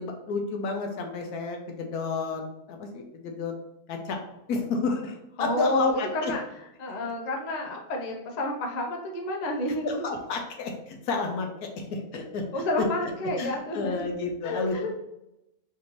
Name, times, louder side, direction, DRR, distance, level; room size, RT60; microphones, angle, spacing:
voice 1, 0.0-2.4 2.7-3.5 3.9-4.2 4.5-6.3 9.7-12.4 13.4-14.7, left 4 dB, 75° left, 3 dB, 1.2 m, -31 dB
voice 2, 5.4-6.4 6.8-10.0 12.5-14.1 14.4-14.9, left 1 dB, 55° left, 0 dB, 0.4 m, -30 dB
4.2 x 2.6 x 3.0 m, 0.89 s
omnidirectional pair, 1.6 m